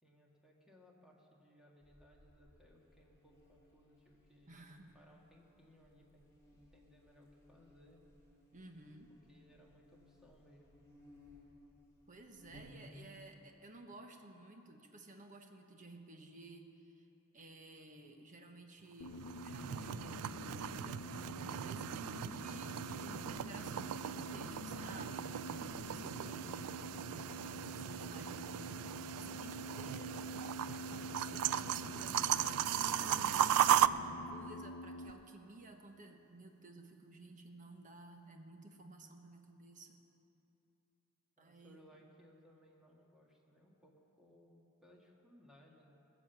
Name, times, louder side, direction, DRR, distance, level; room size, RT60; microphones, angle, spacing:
voice 1, 0.0-4.6 4.9-6.3 6.7-8.0 9.3-10.7 41.4-46.0, equal, 5° right, -2 dB, 1.8 m, -64 dB
Buzz, 1.8-13.2, left 1 dB, 15° left, 3.6 m, -63 dB
voice 2, 4.4-5.0 8.5-9.1 12.1-17.1 17.3-25.5 25.8-40.0 41.4-42.0, right 2 dB, 35° right, 4 dB, 1.2 m, -55 dB
sound 1, 19.0-35.1, left 1 dB, 75° left, 0.6 m, -47 dB
sound 2, 19.1-33.9, right 10 dB, 80° right, 0.3 m, -37 dB
19.5 x 7.4 x 7.2 m, 2.9 s
head